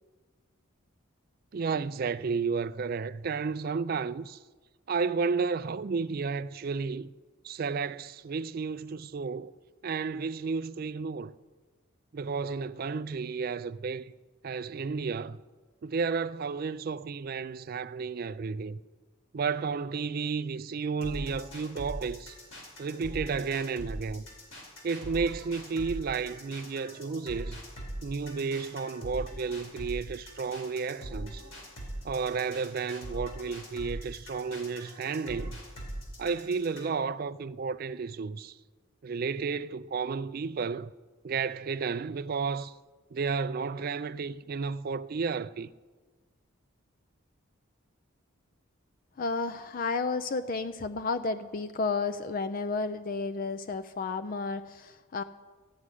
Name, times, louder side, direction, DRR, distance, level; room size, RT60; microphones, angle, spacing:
voice 1, 1.5-4.4 4.9-7.1 7.4-9.5 9.8-11.3 12.1-14.1 14.4-15.4 15.8-18.8 19.3-22.4 22.8-24.2 24.8-27.6 28.0-31.4 32.0-35.6 36.2-38.6 39.0-40.9 41.2-42.7 43.1-45.7, right 5 dB, 45° right, 0.3 m, -32 dB
sound 1, 21.0-37.0, equal, 80° left, 4.4 m, -41 dB
voice 2, 49.2-55.2, left 4 dB, 40° left, 0.4 m, -32 dB
14.0 x 6.2 x 9.8 m
head